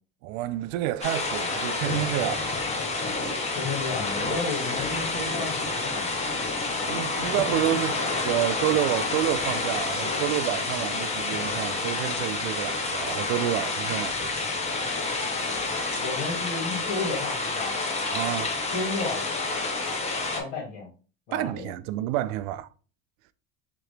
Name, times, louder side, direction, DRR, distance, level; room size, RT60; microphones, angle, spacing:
voice 1, 0.2-2.5 6.7-8.0 8.2-14.3 14.7-14.8 18.1-18.5 21.3-22.7, right 14 dB, 75° right, 0.5 m, -29 dB
sound 1, 1.0-20.4, left 3 dB, 15° left, 0.6 m, -29 dB
voice 2, 3.5-6.1 16.0-17.8 18.7-19.2 20.4-20.9 21.3-21.7, left 3 dB, 90° left, 2.0 m, -32 dB
3.8 x 3.0 x 3.3 m
cardioid pair, 135°, 41 cm